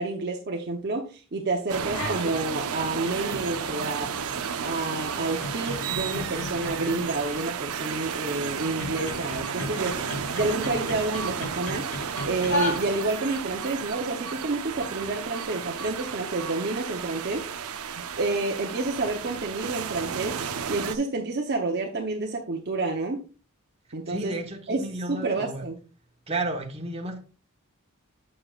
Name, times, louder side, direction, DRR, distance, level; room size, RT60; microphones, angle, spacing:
voice 1, 0.0-4.1 4.6-11.9 12.2-20.4 20.7-23.2 23.9-24.3 24.7-25.8, right 2 dB, 50° right, 0.8 m, -29 dB
sound 1, 1.7-21.0, right 7 dB, 80° right, 0.6 m, -33 dB
sound 2, 1.8-2.3 2.7-13.3, left 1 dB, 80° left, 3.1 m, -36 dB
voice 2, 24.1-25.6 26.3-27.2, right 2 dB, 30° right, 1.2 m, -32 dB
7.5 x 6.9 x 2.4 m
head